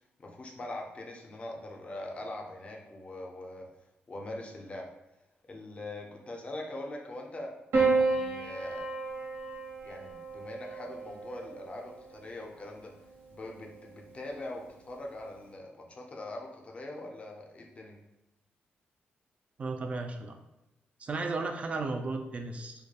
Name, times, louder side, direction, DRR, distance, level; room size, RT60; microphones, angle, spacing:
voice 1, 0.2-3.7 4.1-4.9 5.5-7.5 7.8-8.9 9.8-12.9 13.3-18.0, left 1 dB, 30° left, 1 dB, 0.4 m, -42 dB
Piano, 7.7-12.2 13.4-14.1, right 3 dB, 90° right, 0.8 m, -31 dB
voice 2, 19.6-20.4 21.0-22.7, right 3 dB, 35° right, 4 dB, 0.3 m, -34 dB
2.2 x 2.2 x 2.8 m, 0.96 s
cardioid pair, 110°, 4 cm